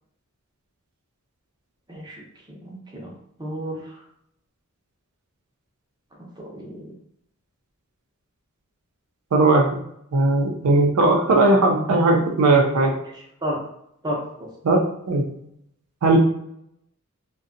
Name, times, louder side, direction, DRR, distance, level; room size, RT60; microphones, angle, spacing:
voice 1, 1.9-2.2 2.6-3.1 3.4-4.0 6.4-6.9 13.1-13.6 14.0-14.5, equal, 20° right, -2 dB, 0.6 m, -32 dB
voice 2, 9.3-9.7 10.1-12.9 14.6-15.3 16.0-16.2, right 2 dB, 75° right, 2 dB, 0.4 m, -18 dB
2.6 x 2.2 x 2.5 m, 0.73 s
head